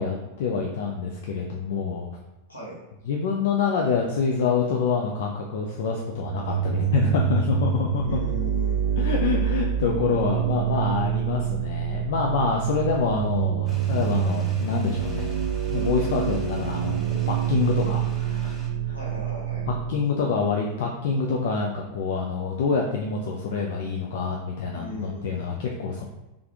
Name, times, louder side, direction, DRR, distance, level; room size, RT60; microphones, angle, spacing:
voice 1, 0.0-2.1 3.1-8.2 9.0-15.4 15.7-18.6 18.9-19.0 19.9-26.0, left 5 dB, 55° left, 0 dB, 0.4 m, -26 dB
sound 1, 6.2-19.9, right 10 dB, 60° right, 0.3 m, -26 dB
voice 2, 8.0-9.2 18.9-19.7 24.7-25.6, left 1 dB, 75° left, -4 dB, 1.4 m, -38 dB
sound 2, 13.7-18.7, equal, 5° left, 1.1 m, -47 dB
3.4 x 3.4 x 3.6 m, 1.0 s
figure-of-eight pair, 90°, 0 cm